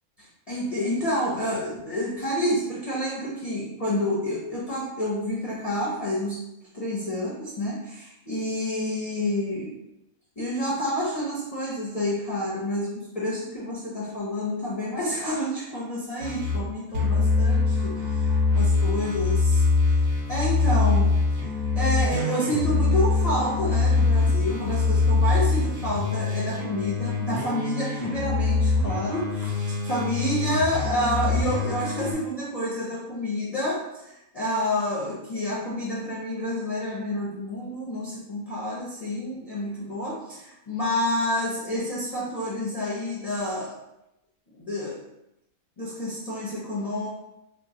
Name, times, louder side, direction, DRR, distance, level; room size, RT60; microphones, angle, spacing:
voice 1, 0.5-6.4 6.7-9.7 10.4-19.6 20.3-21.1 21.8-43.8 44.5-45.0 45.8-47.1, left 1 dB, 45° left, -6 dB, 0.5 m, -29 dB
sound 1, 16.2-16.6 16.9-32.1, left 4 dB, 85° right, 1.3 m, -23 dB
3.0 x 2.2 x 3.7 m, 0.87 s
omnidirectional pair, 1.6 m